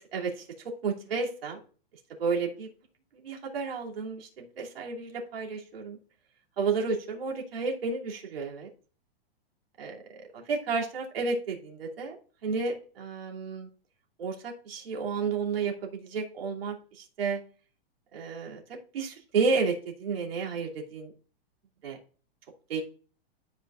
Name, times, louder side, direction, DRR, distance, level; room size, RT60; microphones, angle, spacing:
voice 1, 0.1-0.4 0.8-1.6 2.2-2.7 3.2-6.0 6.6-8.7 9.8-10.0 10.3-12.2 12.4-13.7 14.2-17.4 18.1-21.1 21.8-22.0 22.7-22.8, right 4 dB, 65° right, -1 dB, 2.8 m, -31 dB
13.0 x 5.6 x 2.5 m, 0.38 s
hypercardioid pair, 180°, 31 cm